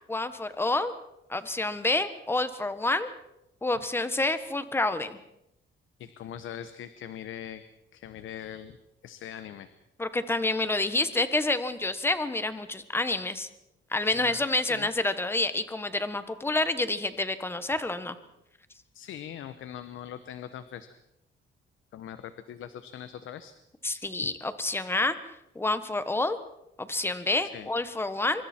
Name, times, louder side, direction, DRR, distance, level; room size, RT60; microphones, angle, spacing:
voice 1, 0.1-0.9 1.3-3.1 3.6-5.2 10.0-13.5 13.9-18.1 23.8-25.1 25.5-26.4 26.8-28.4, left 2 dB, 10° left, 11 dB, 1.3 m, -28 dB
voice 2, 6.0-7.6 7.9-8.8 9.0-9.7 14.1-14.4 14.7-14.9 18.9-20.9 21.9-23.5 24.2-24.3 27.4-27.7, left 10 dB, 80° left, 11 dB, 1.1 m, -41 dB
25.0 x 24.5 x 4.5 m, 0.84 s
cardioid pair, 145°, 20 cm